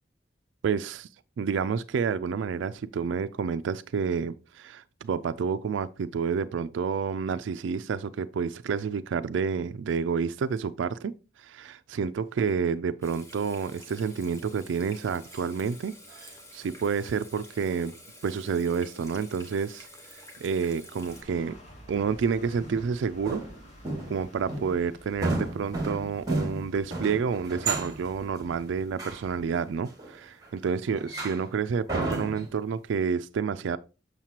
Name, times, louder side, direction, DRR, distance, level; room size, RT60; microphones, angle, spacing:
voice 1, 0.6-1.1 1.4-16.0 16.5-18.0 18.2-19.9 20.4-21.5 21.9-23.4 24.1-33.8, right 6 dB, 90° right, 0.3 m, -29 dB
Water tap faucet / Sink (filling or washing), 13.0-21.2, left 1 dB, 15° left, 1.1 m, -49 dB
sound 1, 15.3-15.4 16.1-16.3 19.0-19.1 21.3-21.4 21.9-22.1 22.6-22.9 23.2-24.2 24.5-24.8 25.2-30.5 30.9-31.5 31.9-32.6, right 2 dB, 20° right, 1.9 m, -33 dB
sound 2, 21.1-29.5, equal, 40° left, 2.4 m, -51 dB
7.3 x 6.5 x 2.9 m
head